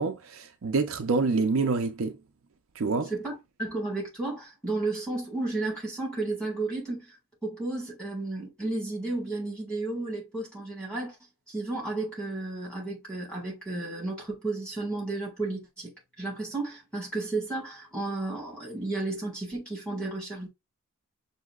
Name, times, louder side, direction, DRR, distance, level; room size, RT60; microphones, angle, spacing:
voice 1, 0.0-2.2 2.8-3.1, right 4 dB, 65° right, 0.5 m, -27 dB
voice 2, 3.1-7.2 7.4-11.2 11.5-15.9 16.2-20.5, right 2 dB, 5° left, 1.8 m, -33 dB
6.2 x 2.7 x 2.3 m
head